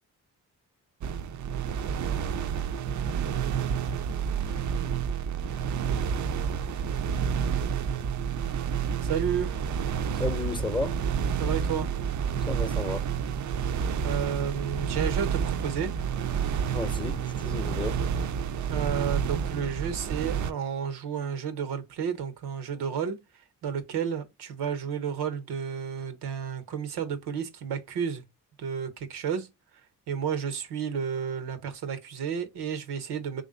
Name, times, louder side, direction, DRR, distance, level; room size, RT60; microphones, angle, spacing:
sound 1, 1.0-20.5, right 7 dB, 50° right, 0.4 m, -29 dB
voice 1, 9.0-9.5 11.4-11.9 14.0-15.9 18.7-28.2 28.6-29.8 30.1-33.4, right 7 dB, 85° right, 0.7 m, -32 dB
voice 2, 10.1-11.0 12.4-13.1 16.7-18.0, left 3 dB, 10° left, 0.7 m, -33 dB
3.2 x 2.5 x 3.8 m
supercardioid pair, 45°, 38 cm